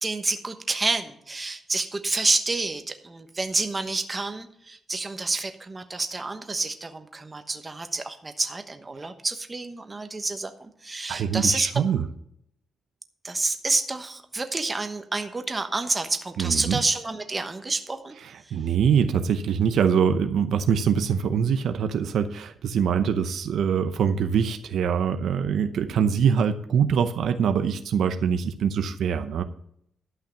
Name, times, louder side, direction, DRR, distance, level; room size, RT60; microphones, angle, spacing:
voice 1, 0.0-11.8 13.2-18.1 18.4-18.6, right 3 dB, 20° right, 7 dB, 1.1 m, -28 dB
voice 2, 11.1-12.1 16.4-16.8 18.2-29.4, right 7 dB, 75° right, 8 dB, 0.7 m, -24 dB
12.0 x 5.7 x 6.9 m, 0.73 s
cardioid pair, 110°, 0 cm